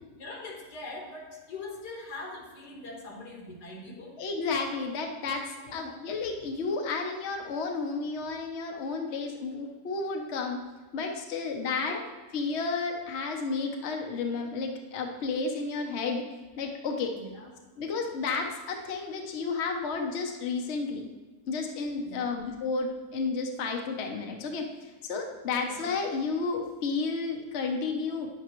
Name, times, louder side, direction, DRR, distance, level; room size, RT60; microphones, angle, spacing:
voice 1, 0.2-4.2 5.6-6.0 11.9-12.1 17.1-17.5 22.0-22.5 25.6-25.9, left 2 dB, 75° left, 0 dB, 2.0 m, -42 dB
voice 2, 4.2-10.6 10.9-12.0 12.3-16.2 16.6-17.1 17.8-21.1 21.5-28.3, left 4 dB, 50° left, 2 dB, 1.0 m, -32 dB
9.3 x 8.1 x 3.1 m, 1.3 s
omnidirectional pair, 1.8 m